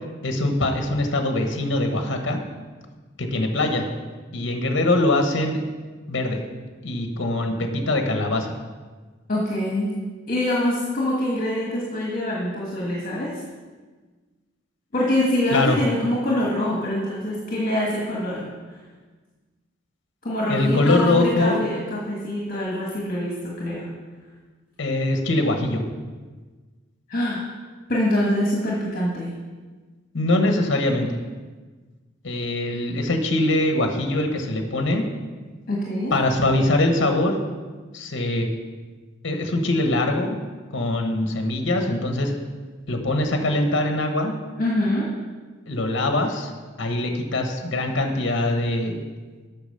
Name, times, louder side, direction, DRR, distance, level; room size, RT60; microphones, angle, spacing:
voice 1, 0.2-2.4 3.2-3.9 4.3-5.6 6.1-6.4 6.8-8.6 15.5-15.8 20.5-21.7 24.8-25.8 30.1-31.2 32.2-35.0 36.1-37.4 37.9-38.5 39.2-40.4 40.7-42.3 42.9-44.3 45.7-46.5 46.8-49.0, left 2 dB, 65° left, 4 dB, 1.1 m, -22 dB
voice 2, 9.3-9.9 10.3-13.4 14.9-18.5 20.2-23.9 27.1-27.4 27.9-29.3 35.7-36.1 44.6-45.1, left 1 dB, 45° left, -4 dB, 1.6 m, -24 dB
8.6 x 6.2 x 6.6 m, 1.4 s
head